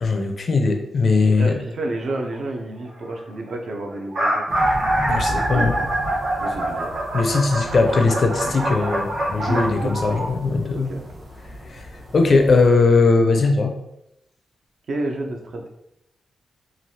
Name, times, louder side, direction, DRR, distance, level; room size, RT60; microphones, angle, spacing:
voice 1, 0.0-1.6 5.0-5.7 7.1-10.9 11.7-11.9 12.1-13.7, left 3 dB, 45° left, 4 dB, 0.4 m, -19 dB
voice 2, 1.4-4.4 5.2-5.9 6.4-6.9 8.5-8.6 9.5-9.9 10.7-11.0 14.9-15.7, right 2 dB, 60° right, 2 dB, 0.5 m, -30 dB
sound 1, 2.0-2.3 3.2-3.3 3.5-3.6 3.9-10.3, right 1 dB, 85° right, 0.8 m, -24 dB
sound 2, 4.5-12.7, equal, 35° right, 0.9 m, -35 dB
3.1 x 2.4 x 2.7 m, 0.84 s
wide cardioid pair, 155°, 0 cm